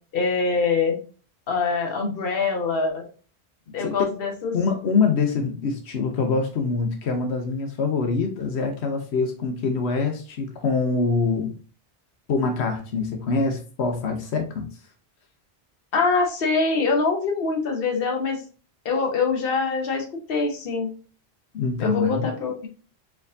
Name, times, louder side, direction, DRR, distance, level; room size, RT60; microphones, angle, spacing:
voice 1, 0.1-1.0 1.5-3.1 3.7-4.5 15.9-18.4 18.8-20.9 21.8-22.7, left 4 dB, 60° left, 2 dB, 1.1 m, -24 dB
voice 2, 3.8-4.1 4.5-11.5 12.3-14.7 21.5-22.3, left 4 dB, 90° left, 4 dB, 1.1 m, -24 dB
4.5 x 3.6 x 2.6 m, 0.38 s
omnidirectional pair, 1.1 m